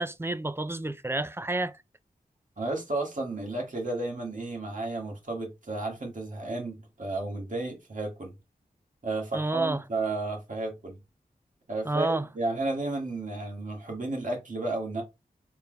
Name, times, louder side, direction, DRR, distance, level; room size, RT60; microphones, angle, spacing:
voice 1, 0.0-1.7 9.3-9.8 11.9-12.2, right 2 dB, 15° right, 0.4 m, -29 dB
voice 2, 2.6-8.4 9.0-11.0 11.7-15.0, right 2 dB, 55° right, 1.8 m, -32 dB
4.2 x 3.9 x 2.2 m
wide cardioid pair, 55°, 16 cm